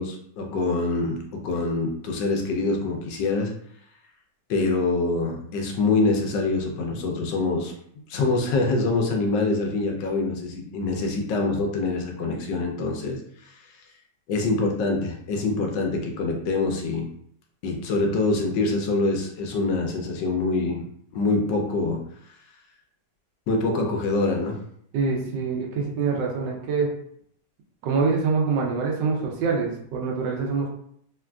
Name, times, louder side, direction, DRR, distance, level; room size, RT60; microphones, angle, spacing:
voice 1, 0.0-3.5 4.5-7.7 8.1-13.2 14.3-17.1 17.6-20.8 21.1-22.0 23.5-24.6, left 3 dB, 90° left, 2 dB, 1.3 m, -25 dB
voice 2, 24.9-26.9 27.8-30.7, right 4 dB, 90° right, 0 dB, 1.4 m, -25 dB
3.6 x 2.4 x 2.2 m, 0.68 s
omnidirectional pair, 1.9 m